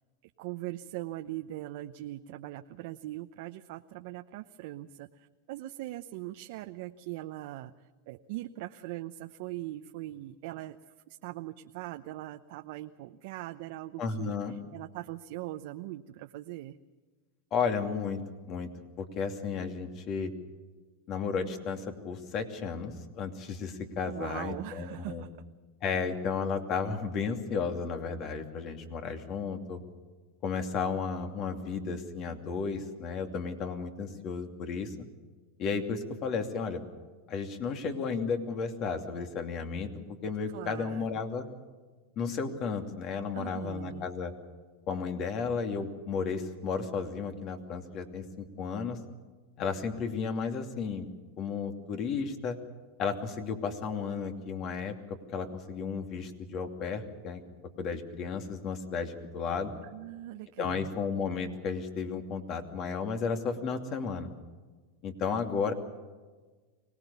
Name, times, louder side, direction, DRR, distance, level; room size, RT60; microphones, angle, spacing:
voice 1, 0.4-16.8 24.0-25.4 40.5-41.1 43.3-44.1 59.9-61.0, right 16 dB, 65° right, 6 dB, 0.8 m, -41 dB
voice 2, 14.0-14.6 17.5-18.2 18.5-18.7 19.0-20.3 21.1-25.2 25.8-29.8 30.4-34.9 35.6-36.8 37.3-39.9 40.2-41.4 42.2-44.3 44.9-49.0 49.6-51.1 51.4-52.6 53.0-57.4 57.8-59.7 60.6-64.3 65.0-65.7, left 5 dB, 40° left, 6 dB, 2.7 m, -33 dB
24.5 x 19.0 x 7.0 m, 1.3 s
supercardioid pair, 130°, 0 cm